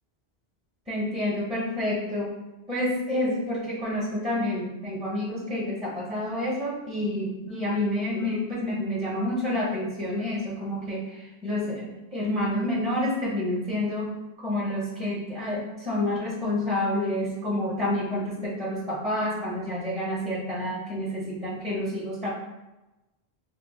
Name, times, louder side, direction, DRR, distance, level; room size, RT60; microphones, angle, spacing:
voice 1, 0.9-2.3 2.7-14.1 14.4-22.3, left 1 dB, 10° right, -6 dB, 0.5 m, -29 dB
3.5 x 2.5 x 2.7 m, 1.0 s
omnidirectional pair, 1.1 m